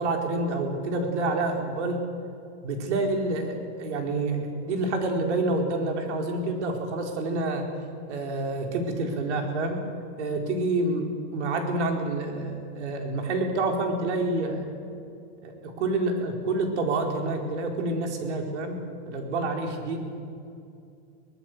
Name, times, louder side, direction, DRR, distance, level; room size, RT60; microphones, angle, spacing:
voice 1, 0.0-2.0 2.6-7.7 8.1-9.8 10.2-14.8 15.4-18.8 19.0-20.2, right 2 dB, 85° right, 3 dB, 4.7 m, -28 dB
23.5 x 19.0 x 8.1 m, 2.5 s
supercardioid pair, 170°, 34 cm